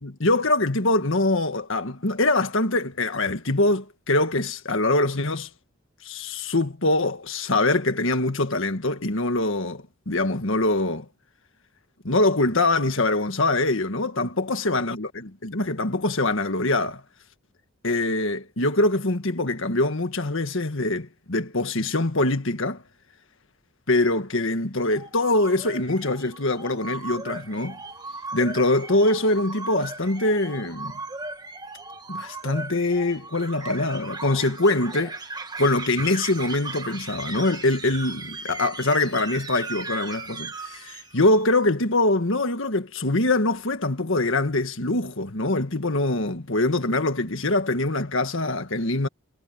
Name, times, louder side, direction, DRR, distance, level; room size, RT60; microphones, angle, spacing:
voice 1, 0.0-5.5 6.0-11.1 12.0-17.0 17.8-22.8 23.9-27.8 28.3-30.9 32.1-35.1 35.6-49.1, left 2 dB, 60° left, 1.8 m, -23 dB
sound 1, 24.9-41.5, right 3 dB, 20° right, 1.8 m, -37 dB
head